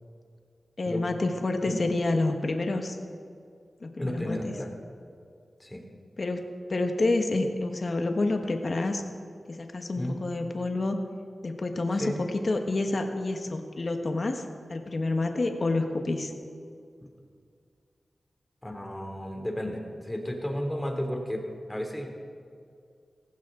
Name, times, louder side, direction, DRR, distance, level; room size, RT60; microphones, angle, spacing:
voice 1, 0.8-3.0 3.8-4.5 6.2-6.4 6.7-9.0 9.5-11.0 11.4-16.3, left 2 dB, 50° left, 5 dB, 1.3 m, -28 dB
voice 2, 4.0-4.7 5.6-5.8 10.0-10.2 12.0-12.2 17.0-17.1 18.6-21.4 21.7-22.3, equal, 15° left, 2 dB, 2.9 m, -33 dB
17.0 x 16.0 x 3.8 m, 2.3 s
wide cardioid pair, 65°, 0 cm